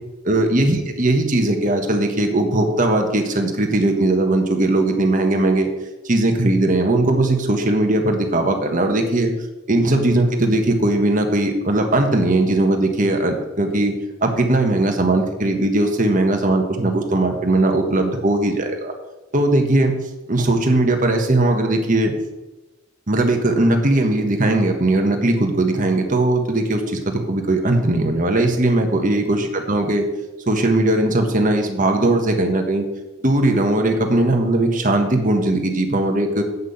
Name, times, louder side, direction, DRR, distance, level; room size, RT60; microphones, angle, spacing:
voice 1, 0.2-5.7 6.0-9.3 9.7-13.9 14.2-18.9 19.3-19.9 20.3-22.1 23.1-30.0 30.5-32.9 33.2-36.4, right 2 dB, 40° right, 4 dB, 1.4 m, -19 dB
8.3 x 6.1 x 7.1 m, 1.1 s
head